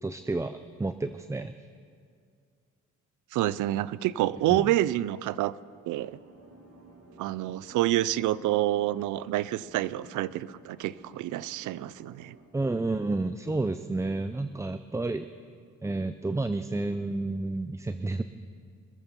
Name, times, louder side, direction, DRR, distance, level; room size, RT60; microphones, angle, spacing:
voice 1, 0.0-1.5 4.5-4.6 12.5-15.3 15.8-18.2, right 2 dB, 10° right, 10 dB, 0.5 m, -30 dB
voice 2, 3.3-5.5 5.9-6.2 7.2-12.3, right 14 dB, 85° right, 19 dB, 0.5 m, -28 dB
sound 1, 6.0-12.5, right 3 dB, 50° right, 2.6 m, -53 dB
24.0 x 8.1 x 7.0 m, 2.2 s
cardioid pair, 90°, 30 cm